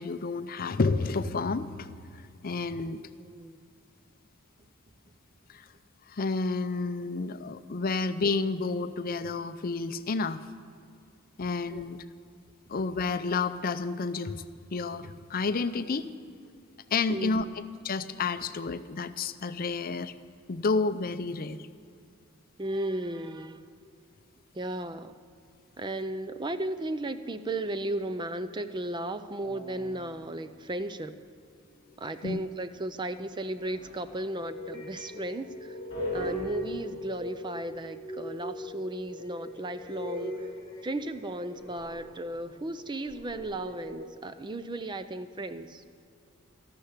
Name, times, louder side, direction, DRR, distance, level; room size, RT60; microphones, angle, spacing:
voice 1, 0.0-1.9 2.1-3.0 5.5-5.7 6.1-10.4 11.4-12.0 12.7-14.4 14.7-16.1 16.9-17.4 17.8-20.1 20.5-21.7 32.2-32.4, left 4 dB, 45° left, 12 dB, 0.5 m, -30 dB
voice 2, 3.1-3.6 11.7-11.8 17.1-17.5 22.6-23.7 24.5-25.1 25.8-31.1 32.0-35.8 36.1-40.5 40.8-45.8, right 1 dB, 20° right, 11 dB, 0.5 m, -35 dB
sound 1, 29.4-30.2 31.9-32.8 33.6-44.1, left 1 dB, 20° left, 4.1 m, -40 dB
13.5 x 12.5 x 8.1 m, 2.4 s
head